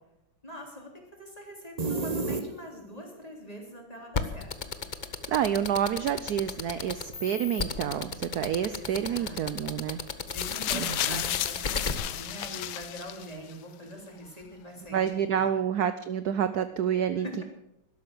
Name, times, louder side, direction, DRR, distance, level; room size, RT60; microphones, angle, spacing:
voice 1, 0.4-4.8 8.7-9.8 10.3-15.6 17.2-17.4, equal, 15° left, 0 dB, 3.5 m, -43 dB
sound 1, 1.8-3.0, right 3 dB, 30° right, 0.7 m, -31 dB
sound 2, 4.1-11.9, left 5 dB, 50° left, 0.5 m, -32 dB
voice 2, 5.3-10.0 10.7-11.2 14.9-17.4, right 9 dB, 70° right, 11 dB, 0.9 m, -28 dB
sound 3, 10.3-13.5 14.4-14.5, left 12 dB, 75° left, 1.5 m, -32 dB
12.5 x 11.5 x 7.9 m, 0.88 s
omnidirectional pair, 2.4 m